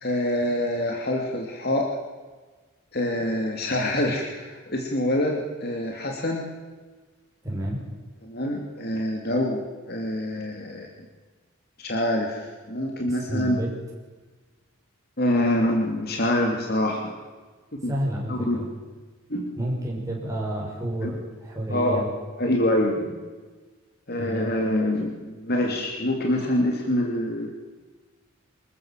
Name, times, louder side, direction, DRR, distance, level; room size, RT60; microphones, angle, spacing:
voice 1, 0.0-1.9 2.9-6.5 8.2-10.9 11.8-13.6 15.2-17.1 17.8-17.9 18.3-18.6 19.3-19.5 21.0-21.1 21.7-22.0 22.4-23.0 24.1-27.5, left 1 dB, 50° left, 1 dB, 2.7 m, -25 dB
voice 2, 7.4-7.8 13.1-13.7 17.8-18.7 19.6-22.1 22.9-23.1 24.2-24.5, right 1 dB, 15° right, -3 dB, 5.9 m, -30 dB
25.5 x 14.0 x 7.5 m, 1.3 s
head